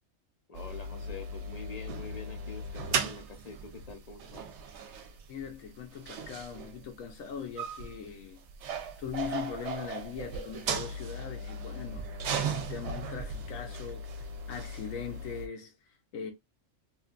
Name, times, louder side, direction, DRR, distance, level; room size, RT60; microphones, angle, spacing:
voice 1, 0.5-4.4, left 4 dB, 50° left, 0.5 m, -45 dB
sound 1, 0.5-15.5, right 4 dB, 65° right, 0.8 m, -37 dB
voice 2, 5.3-8.4 9.0-14.0 14.5-16.3, left 7 dB, 85° left, 1.1 m, -40 dB
3.2 x 2.4 x 2.3 m
omnidirectional pair, 1.3 m